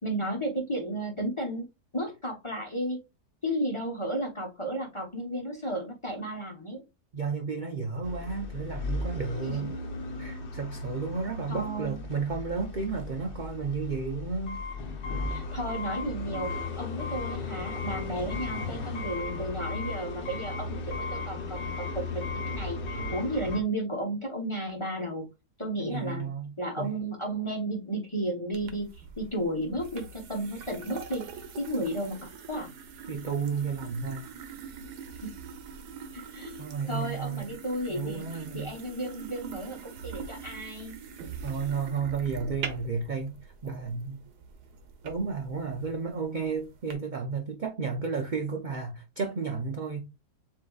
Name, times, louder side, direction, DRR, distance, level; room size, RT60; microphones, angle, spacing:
voice 1, 0.0-1.6 1.9-3.0 3.4-6.8 9.5-9.6 11.5-12.0 15.3-25.3 25.6-26.3 26.6-31.2 31.6-32.7 35.2-35.3 36.1-41.0, right 1 dB, 25° left, 0.7 m, -33 dB
voice 2, 7.1-9.7 10.2-14.6 25.8-26.5 26.8-26.9 33.1-34.3 36.6-37.5 37.9-38.7 41.4-43.3 43.6-44.2 45.0-50.0, right 5 dB, 55° right, 0.5 m, -32 dB
sound 1, 8.0-23.6, left 3 dB, 50° left, 1.0 m, -35 dB
sound 2, 28.5-46.9, right 6 dB, 80° right, 1.4 m, -44 dB
7.4 x 2.6 x 2.3 m
omnidirectional pair, 1.7 m